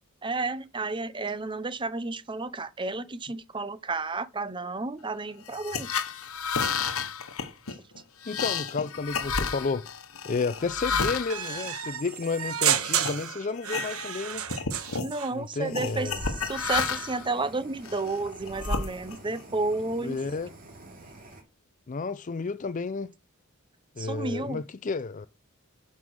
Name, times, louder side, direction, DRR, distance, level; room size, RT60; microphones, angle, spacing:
voice 1, 0.2-5.9 15.0-20.2 24.0-24.6, right 3 dB, 20° right, 0.7 m, -32 dB
sound 1, 5.4-12.5 13.0-13.2 13.6-14.2 14.5-15.1 15.7-17.3 17.8-19.4, left 5 dB, 80° left, 1.1 m, -31 dB
voice 2, 8.3-9.9 10.2-14.5 15.3-16.2 20.0-20.5 21.9-23.1 24.0-25.3, left 4 dB, 35° left, 0.4 m, -31 dB
sound 2, 11.3-15.3, right 9 dB, 90° right, 1.3 m, -30 dB
Fire, 15.8-21.4, right 2 dB, 40° right, 2.7 m, -48 dB
11.0 x 5.5 x 6.2 m
head